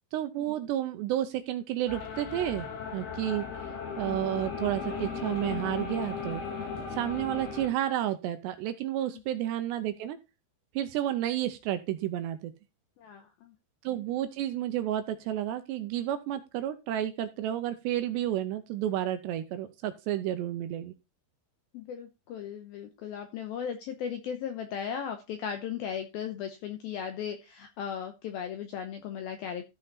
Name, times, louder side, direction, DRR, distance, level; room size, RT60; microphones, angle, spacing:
voice 1, 0.1-2.7 2.9-6.4 6.9-10.2 10.7-12.5 13.8-20.9, right 12 dB, 80° right, 9 dB, 2.6 m, -31 dB
sound 1, 1.9-7.7, left 5 dB, 60° left, 3.6 m, -36 dB
voice 2, 13.0-13.5 21.7-29.7, left 8 dB, 80° left, 6 dB, 2.2 m, -37 dB
13.5 x 5.6 x 4.1 m, 0.26 s
omnidirectional pair, 5.5 m